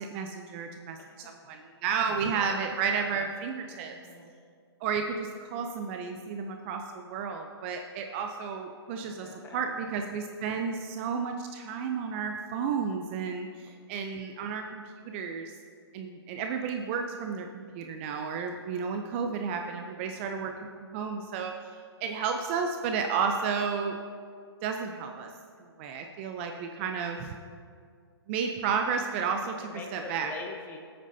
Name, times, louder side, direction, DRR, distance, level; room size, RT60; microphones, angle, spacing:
voice 1, 0.0-1.0 1.4-3.9 4.8-13.5 13.9-15.5 15.9-21.5 22.0-24.0 24.6-25.3 25.8-27.3 28.3-30.3, right 6 dB, 30° right, 4 dB, 0.6 m, -32 dB
voice 2, 1.0-1.4 2.3-2.6 3.7-4.3 9.0-9.6 10.4-10.6 19.4-19.8 26.5-27.2 29.7-30.8, left 3 dB, 15° left, 2 dB, 1.1 m, -45 dB
19.0 x 8.6 x 2.7 m, 2.1 s
hypercardioid pair, 145°, 14 cm